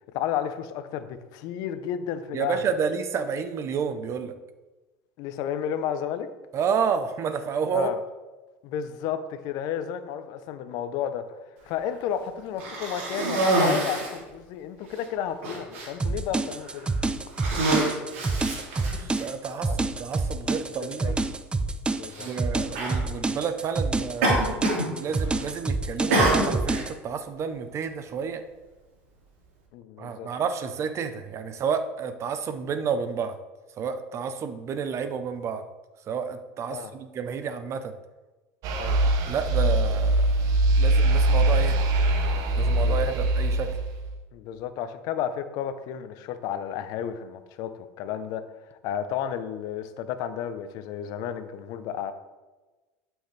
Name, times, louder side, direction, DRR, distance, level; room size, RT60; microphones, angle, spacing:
voice 1, 0.1-2.7 5.2-6.3 7.7-8.0 8.6-11.4 11.7-16.9 19.7-19.8 20.8-21.1 22.0-22.6 29.7-30.3 36.7-36.9 38.8-39.0 42.5-43.1 44.3-52.1, left 9 dB, 65° left, 11 dB, 0.8 m, -32 dB
voice 2, 2.3-4.3 6.5-7.9 18.3-21.2 22.2-24.5 25.0-28.4 30.0-33.3 33.8-35.6 36.1-38.0 39.3-40.3 40.8-41.8 42.6-43.8, right 6 dB, 40° right, 10 dB, 0.9 m, -30 dB
Cough, 12.6-14.2 14.9-15.0 15.4-15.9 16.6-16.9 17.3-19.2 20.2-20.3 22.1-22.3 22.7-23.0 24.2-24.9 25.2-25.6 26.1-26.9, right 2 dB, 90° right, 2.7 m, -26 dB
sound 1, 16.0-26.9, right 3 dB, 15° right, 0.5 m, -28 dB
sound 2, 38.6-44.1, right 1 dB, 60° right, 1.2 m, -22 dB
11.5 x 6.3 x 3.4 m, 1.2 s
supercardioid pair, 105°, 7 cm